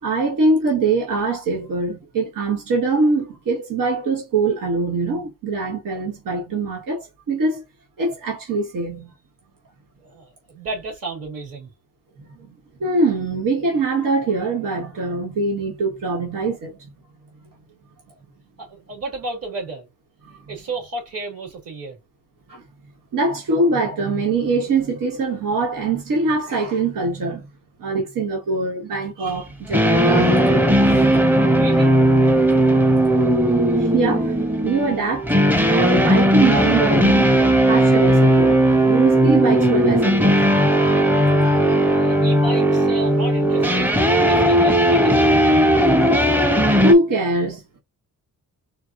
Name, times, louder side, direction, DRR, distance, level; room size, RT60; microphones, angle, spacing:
voice 1, 0.0-7.6 8.0-9.1 12.4-12.5 12.8-16.8 20.3-20.4 22.5-22.6 23.1-27.5 27.8-31.2 33.0-33.3 33.7-37.3 37.7-38.6 38.9-40.5 41.4-41.6 46.0-46.2 46.8-47.6, right 3 dB, 85° right, 1.6 m, -23 dB
voice 2, 10.0-11.7 18.6-19.9 20.5-22.0 31.5-31.9 41.9-43.9 44.2-45.4, right 3 dB, 50° right, 2.9 m, -33 dB
sound 1, 29.7-46.9, right 1 dB, 5° right, 0.7 m, -16 dB
4.6 x 2.5 x 3.8 m
wide cardioid pair, 155°, 32 cm